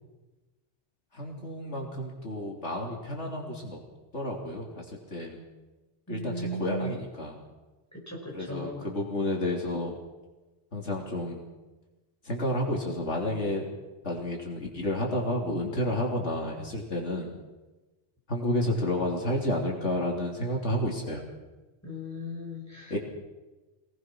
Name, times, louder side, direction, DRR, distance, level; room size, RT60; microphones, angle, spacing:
voice 1, 1.1-3.8 4.1-4.9 5.1-5.4 6.1-7.4 8.3-10.0 10.7-11.5 12.2-13.6 14.0-17.3 18.3-21.2 22.9-23.0, left 1 dB, 75° left, -1 dB, 3.5 m, -30 dB
voice 2, 6.1-7.0 7.9-8.9 21.8-23.0, equal, 15° left, -2 dB, 6.1 m, -36 dB
26.0 x 18.5 x 6.2 m, 1.1 s
omnidirectional pair, 1.2 m